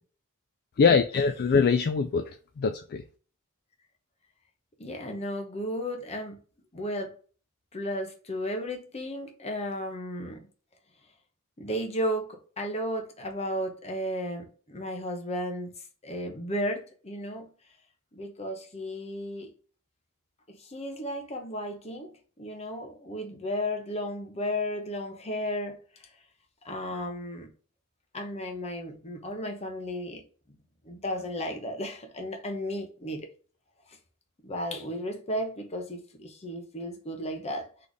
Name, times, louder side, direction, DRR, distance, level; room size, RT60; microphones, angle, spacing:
voice 1, 0.8-3.0, left 5 dB, 45° left, 0.3 m, -23 dB
voice 2, 4.8-6.4 6.7-7.1 7.7-10.4 11.6-15.7 16.0-17.5 18.1-19.5 20.6-22.1 22.4-25.8 26.6-27.5 28.1-30.2 30.8-33.2 34.4-37.7, equal, 30° left, 0.9 m, -34 dB
4.0 x 3.3 x 3.4 m
head